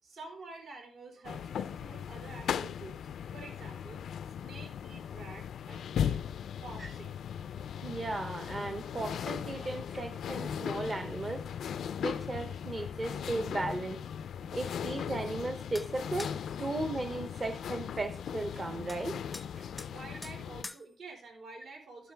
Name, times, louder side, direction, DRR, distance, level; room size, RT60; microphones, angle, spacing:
voice 1, 0.0-3.0 3.3-4.0 4.4-6.2 6.6-7.2 19.9-22.1, right 3 dB, 70° right, 1 dB, 4.0 m, -48 dB
sound 1, 1.2-20.6, left 8 dB, 90° left, 0.4 m, -38 dB
voice 2, 7.8-11.4 12.0-14.0 14.5-16.3 16.6-19.2 19.6-19.7, right 2 dB, 25° right, 8 dB, 0.7 m, -36 dB
sound 2, 15.7-15.9 16.2-16.4 18.9-19.0 19.3-19.5 19.8-19.9 20.2-20.4 20.6-20.8, left 2 dB, 15° left, 0.5 m, -43 dB
12.0 x 9.2 x 3.4 m, 0.38 s
wide cardioid pair, 180°, 0 cm